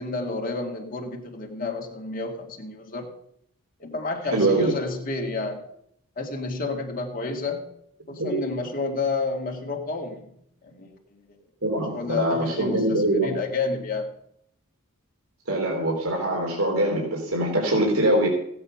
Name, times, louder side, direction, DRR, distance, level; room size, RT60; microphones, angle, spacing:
voice 1, 0.0-3.1 3.8-5.6 6.2-7.7 8.1-10.3 10.6-11.0 11.9-14.1, left 3 dB, 40° left, 1 dB, 1.9 m, -30 dB
voice 2, 4.3-4.7 8.2-8.4 11.6-13.3 15.5-18.3, right 1 dB, 80° right, -1 dB, 3.6 m, -23 dB
16.0 x 8.7 x 5.8 m, 0.73 s
head